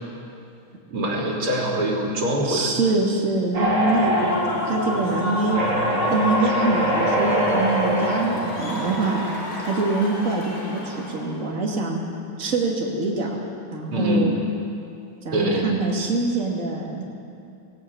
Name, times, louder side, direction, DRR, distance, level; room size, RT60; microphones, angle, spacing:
voice 1, 0.9-2.7 13.9-14.3 15.3-15.7, right 1 dB, 90° right, -2 dB, 3.9 m, -23 dB
voice 2, 2.4-5.6 6.1-9.2 9.6-12.0 12.4-13.3 13.7-14.4 15.2-17.0, right 3 dB, 35° right, -2 dB, 2.9 m, -24 dB
sound 1, 3.5-9.1, right 1 dB, 55° right, 4.5 m, -24 dB
Human voice / Cheering / Applause, 3.7-11.4, left 1 dB, 65° left, 4.0 m, -30 dB
18.0 x 17.5 x 8.7 m, 2.6 s
omnidirectional pair, 2.3 m